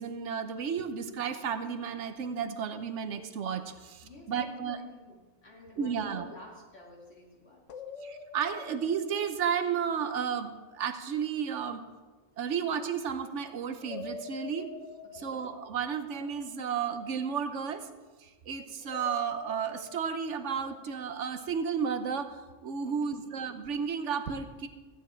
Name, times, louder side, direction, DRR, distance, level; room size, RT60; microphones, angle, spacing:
voice 1, 0.0-4.8 5.8-6.3 8.0-11.8 12.4-14.8 15.1-17.9 18.2-24.7, right 7 dB, 85° right, 9 dB, 1.2 m, -33 dB
voice 2, 4.0-7.6 15.1-15.4 22.8-23.4, left 2 dB, 60° left, -2 dB, 2.7 m, -51 dB
sound 1, 7.7-10.7 13.8-17.1 18.8-21.6, left 5 dB, 90° left, 1.1 m, -47 dB
14.0 x 9.4 x 4.4 m, 1.3 s
omnidirectional pair, 1.2 m